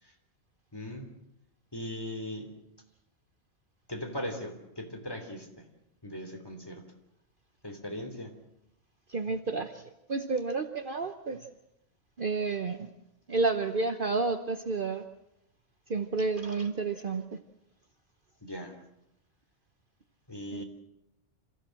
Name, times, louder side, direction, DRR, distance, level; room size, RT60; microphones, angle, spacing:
voice 1, 0.7-1.1 1.7-2.5 3.9-5.6 6.0-6.8 7.6-8.3 18.4-18.7 20.3-20.6, left 1 dB, 20° left, 4 dB, 3.2 m, -39 dB
voice 2, 9.1-9.8 10.1-11.4 12.2-12.9 13.3-15.0 15.9-17.2 20.5-20.6, right 3 dB, 45° right, 7 dB, 1.1 m, -30 dB
27.0 x 15.5 x 7.7 m, 0.85 s
omnidirectional pair, 1.3 m